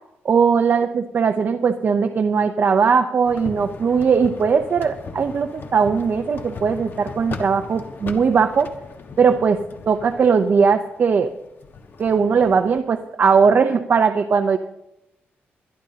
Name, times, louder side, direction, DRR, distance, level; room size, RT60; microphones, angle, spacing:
voice 1, 0.2-8.7 9.2-9.6 9.9-11.3 12.0-14.6, right 5 dB, 50° right, 6 dB, 0.7 m, -19 dB
sound 1, 3.2-12.8, left 4 dB, 50° left, 1.5 m, -38 dB
23.5 x 11.5 x 2.9 m, 0.86 s
cardioid pair, 115°, 4 cm